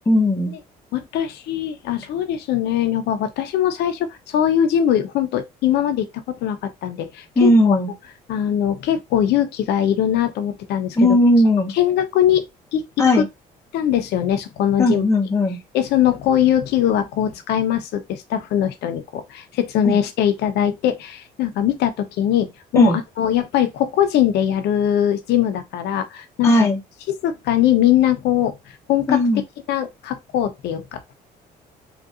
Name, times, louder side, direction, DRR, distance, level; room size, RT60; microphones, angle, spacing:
voice 1, 0.1-0.5 7.4-7.9 11.0-11.7 13.0-13.3 14.8-15.6 19.8-20.0 22.8-23.0 26.4-26.8 29.1-29.4, left 1 dB, 15° left, 0.8 m, -16 dB
voice 2, 0.9-7.8 8.3-11.2 11.7-12.4 12.7-12.8 13.1-13.2 13.7-15.0 15.7-26.7 27.2-28.6 28.9-29.2 29.7-31.2, left 10 dB, 75° left, 0.7 m, -21 dB
3.8 x 2.5 x 2.5 m
cardioid pair, 110°, 17 cm